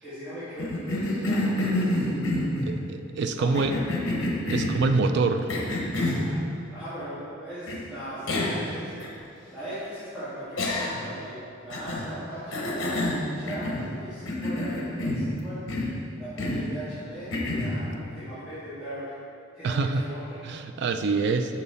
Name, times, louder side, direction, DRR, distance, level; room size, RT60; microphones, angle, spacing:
voice 1, 0.0-2.0 3.4-3.8 6.1-6.4 6.7-8.9 9.5-12.8 13.3-15.6 16.2-19.1 19.5-20.4, equal, 5° right, -14 dB, 1.5 m, -39 dB
Cough, 0.6-2.8 3.5-4.8 5.5-6.3 7.7-7.8 8.3-8.7 9.0-9.1 10.6-11.1 11.7-12.1 12.5-13.9 14.3-15.3 15.7-16.0 16.4-16.7 17.3-17.8, left 1 dB, 65° left, 0.9 m, -28 dB
voice 2, 2.6-3.8 4.5-5.5 19.6-20.0 20.4-21.6, right 4 dB, 55° right, 7 dB, 0.4 m, -25 dB
5.9 x 5.4 x 4.2 m, 2.5 s
head